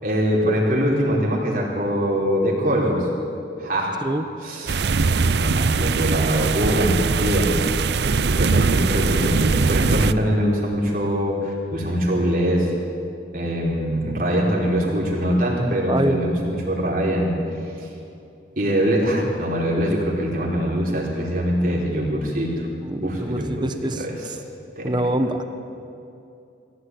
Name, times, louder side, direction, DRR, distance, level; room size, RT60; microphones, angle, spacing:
voice 1, 0.0-3.1 3.6-3.9 4.4-7.5 8.2-12.7 13.3-17.3 17.8-17.9 18.5-22.5 23.0-23.6 23.9-24.3 24.8-25.0, equal, 50° right, -3 dB, 4.7 m, -23 dB
sound 1, 4.7-10.1, right 4 dB, 65° right, 0.6 m, -21 dB
voice 2, 15.9-16.3 22.8-24.0 24.8-25.4, right 1 dB, 25° right, 8 dB, 1.3 m, -24 dB
23.0 x 16.5 x 9.7 m, 2.6 s
head